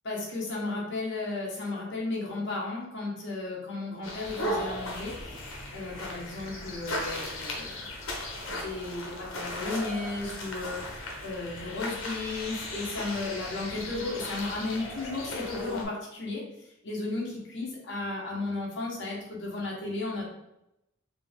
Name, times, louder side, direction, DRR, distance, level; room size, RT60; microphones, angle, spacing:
voice 1, 0.0-5.4 5.7-7.9 8.4-20.3, left 2 dB, 60° left, -3 dB, 1.3 m, -34 dB
sound 1, 4.0-15.8, left 1 dB, 80° left, 1.1 m, -37 dB
4.8 x 2.9 x 3.6 m, 0.87 s
head